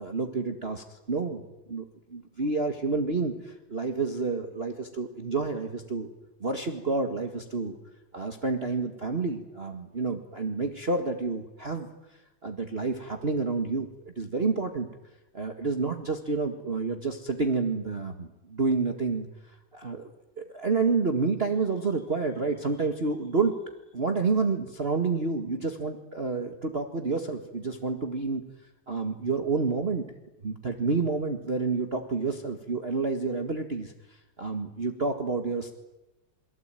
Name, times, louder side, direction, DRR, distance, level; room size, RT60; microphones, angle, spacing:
voice 1, 0.0-1.4 1.7-1.8 2.1-6.1 6.4-7.8 8.1-11.9 12.4-14.9 15.3-20.1 20.4-23.6 23.9-28.4 28.9-30.0 30.4-35.7, right 4 dB, 30° right, 5 dB, 1.9 m, -29 dB
28.5 x 23.0 x 9.1 m, 0.96 s
omnidirectional pair, 2.2 m